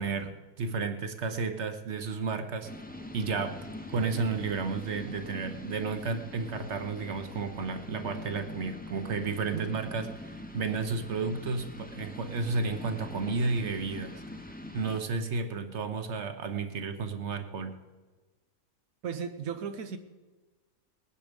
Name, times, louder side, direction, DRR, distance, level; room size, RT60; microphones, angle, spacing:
voice 1, 0.0-2.7 3.1-3.6 3.9-14.2 14.7-17.8, right 4 dB, 50° right, 8 dB, 1.3 m, -32 dB
sound 1, 2.6-15.0, left 1 dB, 10° left, 0.7 m, -43 dB
voice 2, 19.0-20.0, right 7 dB, 75° right, 8 dB, 1.2 m, -35 dB
20.0 x 10.0 x 5.2 m, 1.3 s
omnidirectional pair, 1.6 m